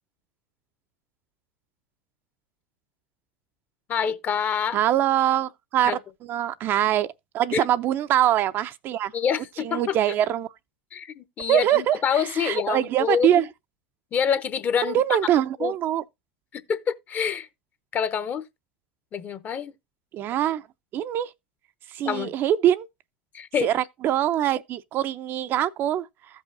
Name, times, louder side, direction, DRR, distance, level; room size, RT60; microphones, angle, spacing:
voice 1, 3.9-4.8 5.9-6.0 7.5-7.7 9.1-10.0 10.9-13.4 14.1-15.0 15.6-15.7 16.5-17.5 17.9-18.4 19.1-19.7 22.0-22.3 23.3-23.7, left 7 dB, 35° left, 0.9 m, -26 dB
voice 2, 4.7-6.0 6.3-7.1 7.3-9.1 9.6-10.5 11.5-12.0 12.4-13.5 14.8-16.0 20.1-20.6 20.9-21.3 21.9-22.9 23.6-26.1, right 11 dB, 40° right, 0.5 m, -23 dB
15.0 x 5.5 x 2.6 m
hypercardioid pair, 90°, 5 cm